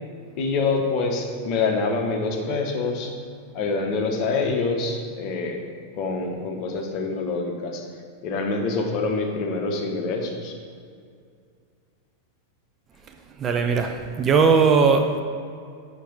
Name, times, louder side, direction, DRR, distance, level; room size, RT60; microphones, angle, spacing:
voice 1, 0.4-3.1 3.5-5.6 5.9-7.9 8.2-10.6, left 3 dB, 40° left, 2 dB, 0.9 m, -26 dB
voice 2, 13.4-15.2, right 5 dB, 25° right, 5 dB, 0.5 m, -19 dB
6.6 x 5.2 x 3.9 m, 2.2 s
figure-of-eight pair, 90°, 0 cm